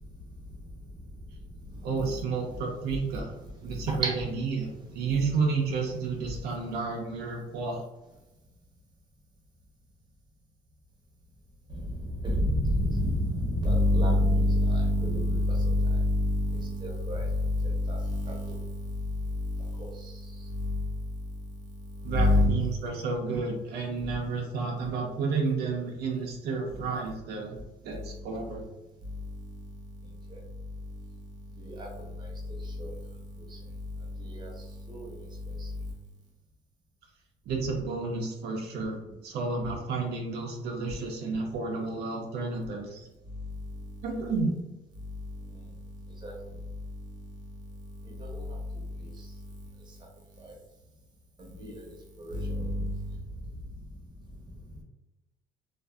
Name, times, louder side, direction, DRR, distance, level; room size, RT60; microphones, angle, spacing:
voice 1, 1.8-3.4 3.6-4.1 4.4-7.8 22.0-27.6 27.8-28.6 37.5-43.0 44.0-44.5, right 4 dB, 70° right, 0 dB, 0.5 m, -31 dB
voice 2, 12.2-17.3 17.6-18.6 19.8-19.9 22.1-22.5 31.6-31.9 32.8-32.9 34.4-34.5 34.9-35.1 46.2-46.3 48.2-48.4 51.6-51.8 52.2-52.9, left 1 dB, 25° right, -2 dB, 0.8 m, -26 dB
2.5 x 2.4 x 2.3 m, 1.0 s
cardioid pair, 110°, 17 cm